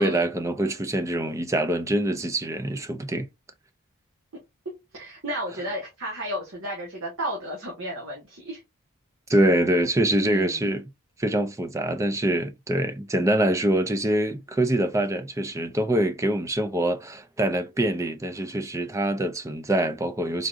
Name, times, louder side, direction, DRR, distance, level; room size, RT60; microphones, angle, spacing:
voice 1, 0.0-3.3 9.3-10.8 11.2-20.5, right 1 dB, 15° right, 0.3 m, -24 dB
voice 2, 4.9-8.6 10.2-10.7, equal, 70° right, 1.3 m, -33 dB
3.8 x 3.6 x 2.5 m
head